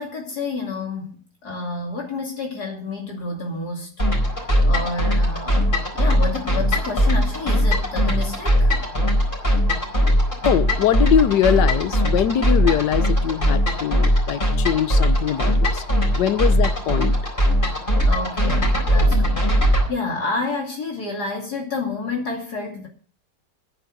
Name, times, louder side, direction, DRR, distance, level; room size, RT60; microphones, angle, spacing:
voice 1, 0.0-3.9 4.4-8.7 18.0-22.9, left 3 dB, 65° left, 0 dB, 3.2 m, -29 dB
sound 1, 4.0-19.9, equal, 30° left, 4.5 m, -20 dB
voice 2, 10.4-15.8 16.1-17.2, left 9 dB, 90° left, 13 dB, 1.5 m, -22 dB
10.5 x 10.0 x 6.3 m, 0.43 s
omnidirectional pair, 1.8 m